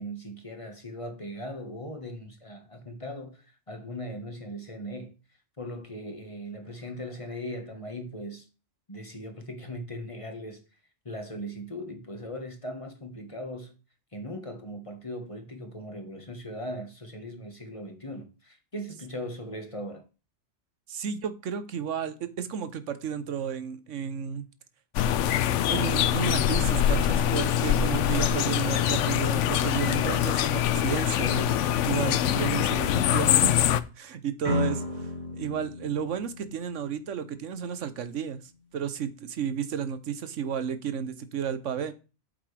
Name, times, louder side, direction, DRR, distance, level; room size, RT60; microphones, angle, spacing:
voice 1, 0.0-5.1 5.6-8.5 8.9-10.6 11.0-13.7 14.1-20.0 27.7-28.4, equal, 25° left, 1.6 m, -39 dB
voice 2, 20.9-24.4 25.7-31.5 31.8-33.6 34.0-34.8 35.3-38.4 38.7-41.9, right 8 dB, 85° right, 1.2 m, -32 dB
sound 1, 24.9-33.8, left 10 dB, 85° left, 0.9 m, -24 dB
sound 2, 34.4-37.3, left 3 dB, 35° right, 2.3 m, -33 dB
8.7 x 7.6 x 3.3 m
omnidirectional pair, 1.2 m